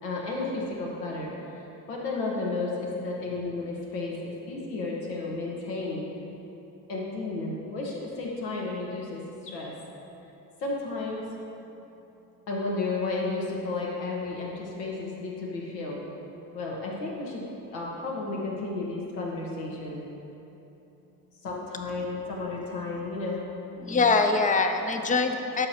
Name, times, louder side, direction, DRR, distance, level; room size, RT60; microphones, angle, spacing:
voice 1, 0.0-6.0 6.9-9.7 10.6-11.2 12.5-16.1 16.5-17.4 17.7-20.0 21.4-23.4, left 3 dB, 75° left, -3 dB, 1.5 m, -33 dB
voice 2, 23.8-25.7, left 4 dB, 15° left, 6 dB, 0.5 m, -24 dB
12.5 x 5.4 x 2.9 m, 2.9 s
hypercardioid pair, 60°, 49 cm